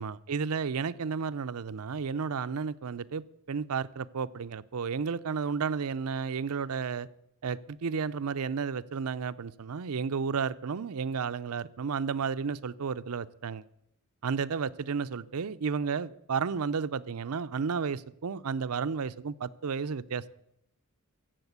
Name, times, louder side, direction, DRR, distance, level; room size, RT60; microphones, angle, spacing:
voice 1, 0.0-7.1 7.4-13.6 14.2-20.3, right 5 dB, 75° right, 0.5 m, -32 dB
15.5 x 7.6 x 8.0 m
head